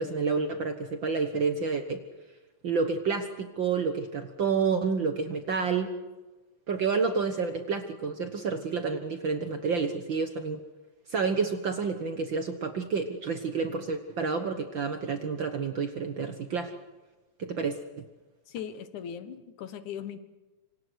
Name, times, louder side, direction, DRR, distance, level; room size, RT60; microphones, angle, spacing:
voice 1, 0.0-2.0 2.6-5.9 6.7-10.6 11.1-16.7 17.4-18.0, right 5 dB, 55° right, 7 dB, 1.5 m, -29 dB
voice 2, 18.5-20.2, left 8 dB, 80° left, 11 dB, 2.7 m, -39 dB
26.5 x 25.5 x 6.3 m, 1.2 s
omnidirectional pair, 3.5 m